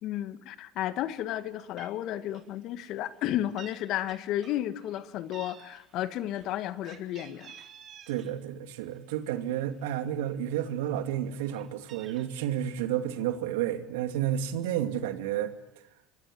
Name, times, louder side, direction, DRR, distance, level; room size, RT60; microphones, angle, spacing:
voice 1, 0.0-7.5, left 12 dB, 60° left, 1.7 m, -33 dB
Meow, 1.4-1.5 1.8-2.0 2.3-2.6 2.8-3.8 4.1-5.0 5.3-8.3 8.7-9.8 10.3-10.4 10.7-12.2, right 9 dB, 50° right, 3.9 m, -52 dB
voice 2, 8.1-15.5, right 11 dB, 75° right, 2.6 m, -31 dB
26.5 x 22.0 x 9.4 m
hypercardioid pair, 75°, 0 cm